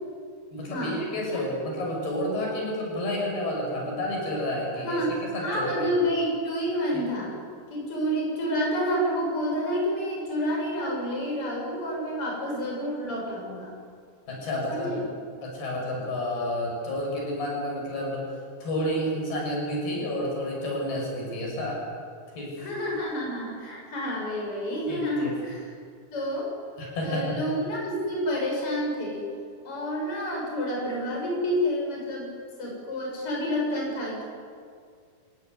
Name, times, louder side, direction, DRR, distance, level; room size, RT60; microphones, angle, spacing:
voice 1, 0.5-5.0 5.3-5.9 6.9-7.0 14.3-14.9 15.4-18.2 18.6-21.8 22.3-22.6 24.9-25.4 26.8-27.4, left 1 dB, 80° left, -2 dB, 8.6 m, -30 dB
voice 2, 4.8-5.2 5.4-7.3 7.7-13.7 14.7-15.0 22.6-25.7 26.1-26.5 27.0-29.2 29.6-32.3 32.6-34.2, equal, 35° left, -2 dB, 7.3 m, -29 dB
27.5 x 17.0 x 10.0 m, 2.2 s
omnidirectional pair, 4.5 m